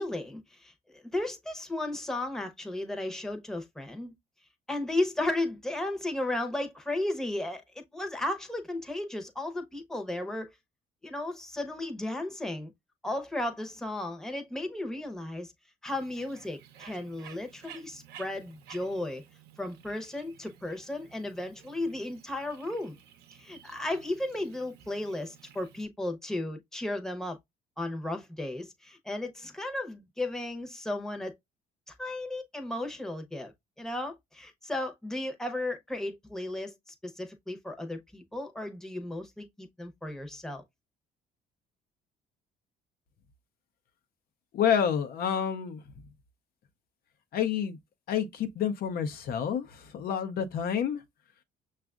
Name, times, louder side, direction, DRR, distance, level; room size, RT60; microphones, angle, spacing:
voice 1, 0.0-4.1 4.7-10.5 11.0-12.7 13.0-15.5 15.8-19.2 19.6-23.0 23.3-27.4 27.8-31.3 31.9-33.5 33.8-40.6, left 1 dB, 5° left, 0.8 m, -34 dB
Bird, 15.9-25.9, right 9 dB, 70° right, 0.7 m, -54 dB
voice 2, 44.5-45.8 47.3-47.8 48.1-51.0, left 8 dB, 65° left, 0.6 m, -29 dB
6.0 x 2.4 x 2.3 m
cardioid pair, 110°, 17 cm